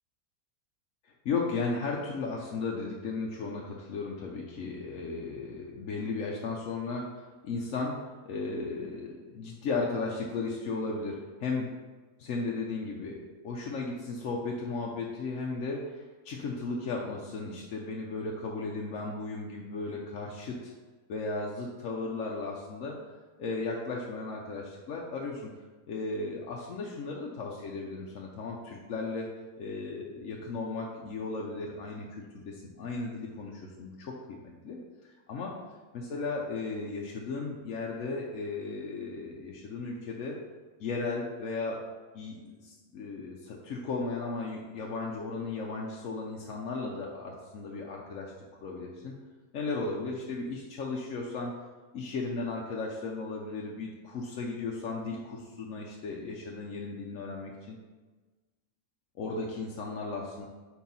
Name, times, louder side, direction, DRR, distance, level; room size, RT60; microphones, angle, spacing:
voice 1, 1.0-11.7 12.2-20.7 21.1-23.0 23.4-25.5 25.9-35.5 35.9-40.4 40.8-41.8 42.1-48.3 48.6-49.1 49.5-51.5 51.9-57.8 59.2-60.5, left 3 dB, 70° left, -2 dB, 1.1 m, -35 dB
4.6 x 4.5 x 5.4 m, 1.3 s
omnidirectional pair, 1.5 m